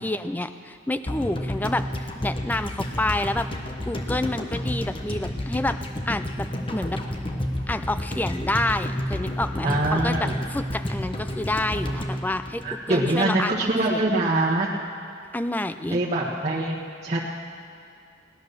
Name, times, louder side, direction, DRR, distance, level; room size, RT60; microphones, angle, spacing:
voice 1, 0.0-3.5 3.8-5.8 6.1-7.0 7.7-13.5 13.9-14.2 15.3-16.0, left 1 dB, 10° left, 10 dB, 0.4 m, -28 dB
sound 1, 1.1-13.3 13.5-13.6, left 1 dB, 25° left, 1.1 m, -31 dB
voice 2, 9.6-10.3 11.7-12.2 12.6-14.7 15.9-17.2, right 2 dB, 35° right, -7 dB, 1.4 m, -24 dB
18.0 x 11.0 x 6.6 m, 2.4 s
head